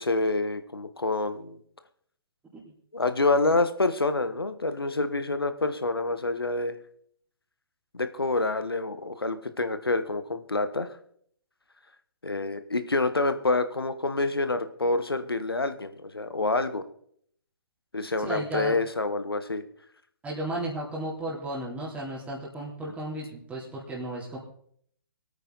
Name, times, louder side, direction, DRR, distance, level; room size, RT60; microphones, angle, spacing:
voice 1, 0.0-1.6 2.9-6.8 7.9-10.9 12.2-16.8 17.9-19.6, left 2 dB, 85° left, 10 dB, 1.4 m, -27 dB
voice 2, 18.2-18.8 20.2-24.4, right 1 dB, 10° right, -5 dB, 3.4 m, -34 dB
22.0 x 9.0 x 4.0 m, 0.65 s
figure-of-eight pair, 130°, 12 cm